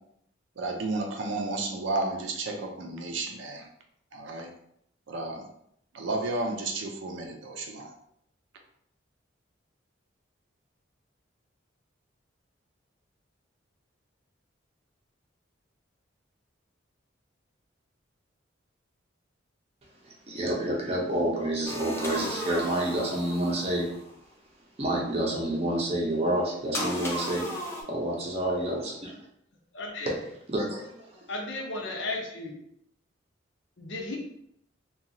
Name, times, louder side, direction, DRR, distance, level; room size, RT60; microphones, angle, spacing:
voice 1, 0.6-3.7 4.1-4.5 5.1-5.4 5.9-7.9, right 2 dB, 70° right, 3 dB, 0.5 m, -32 dB
voice 2, 20.0-23.9 24.8-27.5 27.9-29.1 30.5-31.2, right 1 dB, 30° right, -2 dB, 0.6 m, -29 dB
sound 1, 21.6-24.1 26.7-27.8, equal, 15° left, 0.4 m, -35 dB
voice 3, 29.7-30.1 31.3-32.6 33.8-34.2, left 2 dB, 65° left, 0 dB, 0.6 m, -34 dB
2.9 x 2.3 x 2.6 m, 0.72 s
head